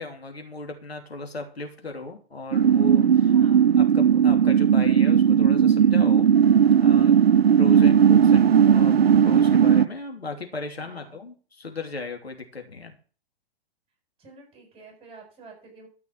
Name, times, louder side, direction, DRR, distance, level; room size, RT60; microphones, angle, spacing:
voice 1, 0.0-3.3 3.7-6.3 6.8-7.2 7.6-9.0 9.2-12.9, left 3 dB, 90° left, 4 dB, 3.0 m, -36 dB
sound 1, 2.5-9.9, right 8 dB, 80° right, 0.7 m, -17 dB
voice 2, 3.3-3.8 7.6-8.1 10.8-11.2 14.2-15.9, right 3 dB, 20° right, 2 dB, 7.7 m, -49 dB
13.5 x 6.0 x 7.6 m, 0.39 s
figure-of-eight pair, 115°, 30 cm